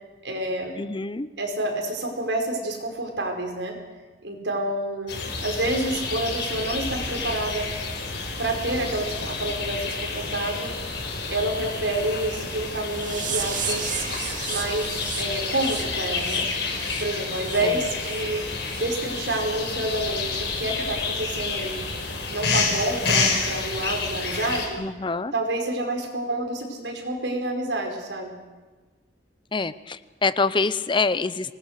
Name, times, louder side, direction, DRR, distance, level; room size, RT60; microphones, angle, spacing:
voice 1, 0.2-0.7 1.4-3.8 4.2-5.1 5.4-7.7 8.4-10.7 11.3-14.0 14.4-16.4 17.0-18.4 18.7-21.8 22.3-24.8 25.3-28.3, right 1 dB, 80° right, 2 dB, 5.0 m, -28 dB
voice 2, 0.8-1.3 17.6-17.7 24.8-25.3 29.5-31.5, left 4 dB, 25° left, 15 dB, 0.6 m, -25 dB
sound 1, 5.1-24.7, left 4 dB, 70° left, 5.2 m, -29 dB
sound 2, 12.9-17.6 18.0-18.2 18.7-18.8 19.3-19.4 19.9-20.0, right 8 dB, 45° right, 2.2 m, -34 dB
25.5 x 20.0 x 6.6 m, 1.3 s
head